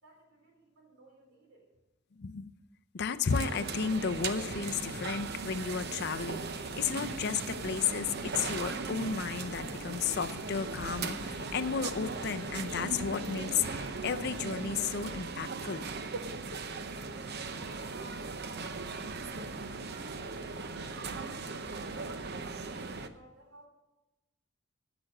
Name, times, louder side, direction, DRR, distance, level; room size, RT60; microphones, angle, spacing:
voice 1, 0.0-1.7 17.5-20.5 20.8-23.7, right 1 dB, 70° right, 2 dB, 3.4 m, -57 dB
voice 2, 2.2-2.5 2.9-15.9, left 6 dB, 55° left, 11 dB, 0.5 m, -33 dB
sound 1, 3.3-23.1, right 4 dB, 50° right, 0.7 m, -38 dB
sound 2, 6.8-15.0, right 1 dB, 5° right, 0.9 m, -48 dB
15.0 x 6.0 x 6.5 m, 1.1 s
head